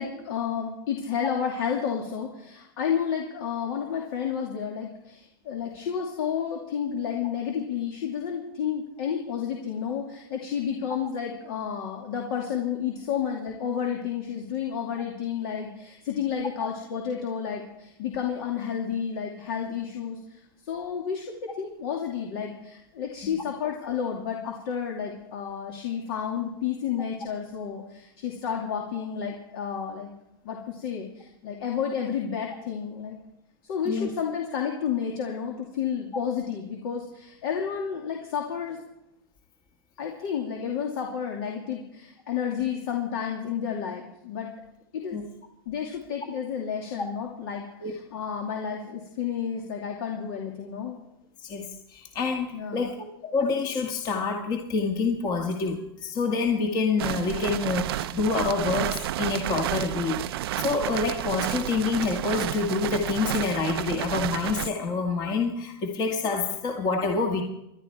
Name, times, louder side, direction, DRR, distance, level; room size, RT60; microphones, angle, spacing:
voice 1, 0.0-21.2 21.5-30.1 30.4-33.2 33.6-38.8 40.0-44.5 44.9-45.2 45.7-51.0 52.5-52.9, left 7 dB, 65° left, 0 dB, 2.6 m, -31 dB
voice 2, 51.4-67.4, left 4 dB, 30° left, 3 dB, 1.8 m, -27 dB
sound 1, 57.0-64.7, right 14 dB, 70° right, 0.6 m, -31 dB
27.0 x 11.0 x 4.6 m, 0.85 s
supercardioid pair, 140°, 13 cm